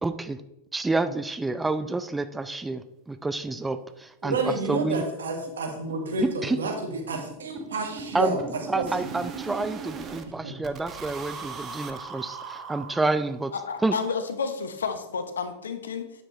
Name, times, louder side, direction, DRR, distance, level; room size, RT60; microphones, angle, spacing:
voice 1, 0.0-0.4 0.7-5.0 6.2-6.6 8.1-8.4 8.7-13.5 13.8-14.0, right 3 dB, 10° right, 11 dB, 0.5 m, -28 dB
sound 1, 3.4-3.5 3.8-3.9 4.2-4.3 4.6-4.8 5.0-10.3 10.6-13.4, right 5 dB, 30° right, 1.0 m, -39 dB
voice 2, 4.2-8.4 8.7-8.8 10.4-10.5, right 3 dB, 75° right, 2 dB, 1.8 m, -29 dB
voice 3, 13.5-16.2, left 5 dB, 80° left, 8 dB, 1.0 m, -31 dB
8.7 x 7.4 x 3.2 m, 0.89 s
hypercardioid pair, 95°, 0 cm